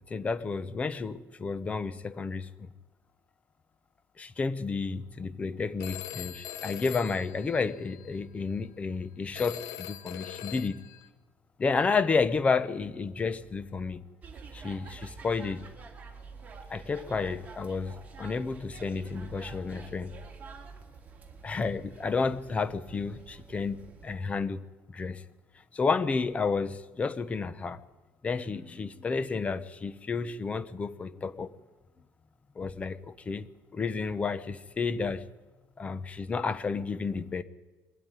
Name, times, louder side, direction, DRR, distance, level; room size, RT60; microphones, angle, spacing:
voice 1, 0.0-2.7 4.2-10.8 11.6-14.0 14.5-15.6 16.7-20.2 21.4-24.6 24.9-25.2 25.7-27.8 28.2-31.5 32.6-33.5 33.7-35.2 35.8-37.4, left 4 dB, 20° left, 14 dB, 0.8 m, -31 dB
Telephone, 5.8-8.1 9.3-11.1, left 11 dB, 85° left, 1.0 m, -42 dB
sound 1, 14.2-24.2, right 5 dB, 25° right, 2.5 m, -48 dB
22.0 x 13.0 x 9.7 m, 1.2 s
cardioid pair, 165°, 6 cm